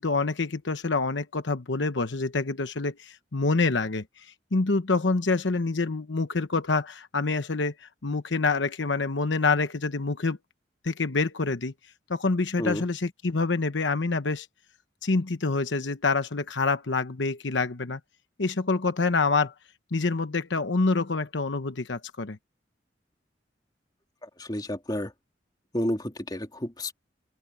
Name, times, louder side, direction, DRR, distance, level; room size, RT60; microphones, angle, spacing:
voice 1, 0.0-10.4 10.8-11.7 12.1-14.5 15.0-18.0 18.4-19.5 19.9-22.4, left 3 dB, 85° left, 1.0 m, -26 dB
voice 2, 24.2-25.1 25.7-26.9, equal, 20° left, 2.8 m, -31 dB
open air
head